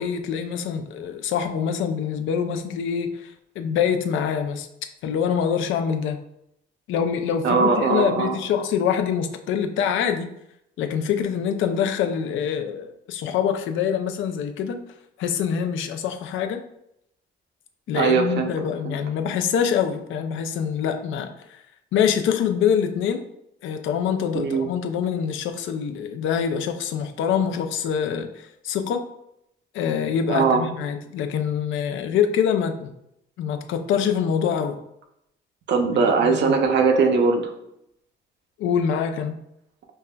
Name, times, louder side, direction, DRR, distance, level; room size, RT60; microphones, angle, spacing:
voice 1, 0.0-4.7 5.0-6.2 6.9-10.3 10.8-14.8 15.2-16.6 17.9-21.6 21.9-23.2 23.6-29.0 29.7-32.9 33.4-34.8 36.2-36.6 38.6-39.3, left 7 dB, 80° left, 7 dB, 0.4 m, -25 dB
voice 2, 7.4-8.4 17.9-19.0 24.3-24.7 30.3-30.6 35.7-37.5, right 4 dB, 60° right, 4 dB, 0.6 m, -20 dB
5.3 x 2.2 x 2.2 m, 0.79 s
cardioid pair, 90°, 20 cm